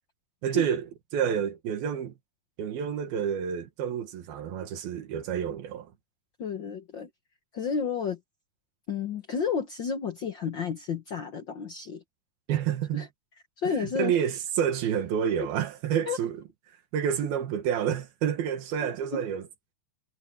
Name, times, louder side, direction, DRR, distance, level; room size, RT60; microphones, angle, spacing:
voice 1, 0.4-0.9 1.1-2.1 2.6-5.9 12.5-13.1 13.6-16.4 16.9-19.4, right 8 dB, 85° right, 3.6 m, -29 dB
voice 2, 6.4-7.1 7.5-8.2 8.9-12.0 12.9-13.1 13.6-14.2 16.1-16.2 18.8-19.2, left 6 dB, 90° left, 1.0 m, -31 dB
omnidirectional pair, 4.2 m